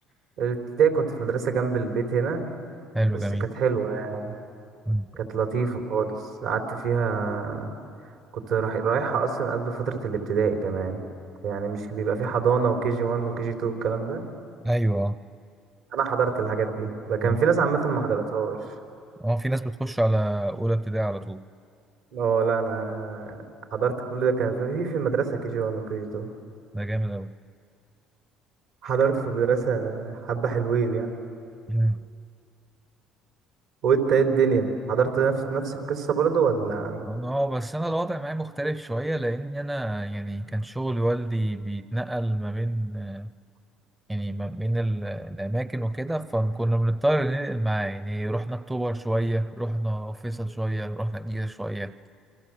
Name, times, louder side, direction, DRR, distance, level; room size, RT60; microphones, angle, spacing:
voice 1, 0.4-2.5 3.1-4.4 5.2-7.7 8.3-11.0 11.4-14.3 15.9-18.6 22.1-23.4 23.7-26.3 28.8-31.1 33.8-37.2, right 6 dB, 80° right, 2 dB, 3.7 m, -25 dB
voice 2, 2.9-3.5 4.9-5.1 14.6-15.2 17.2-17.4 19.2-21.4 26.7-27.3 31.7-32.1 37.1-43.3 44.1-52.0, right 1 dB, 10° right, 13 dB, 0.6 m, -27 dB
28.0 x 24.0 x 7.6 m, 2.4 s
cardioid pair, 100°, 0 cm